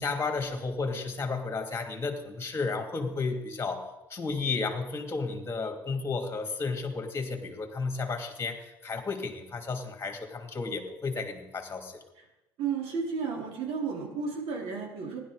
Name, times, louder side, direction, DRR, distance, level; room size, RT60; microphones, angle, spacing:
voice 1, 0.0-12.0, left 4 dB, 25° left, 4 dB, 2.6 m, -33 dB
voice 2, 12.6-15.2, right 5 dB, 65° right, -1 dB, 4.2 m, -32 dB
15.5 x 11.0 x 4.9 m, 0.96 s
supercardioid pair, 80°, 10 cm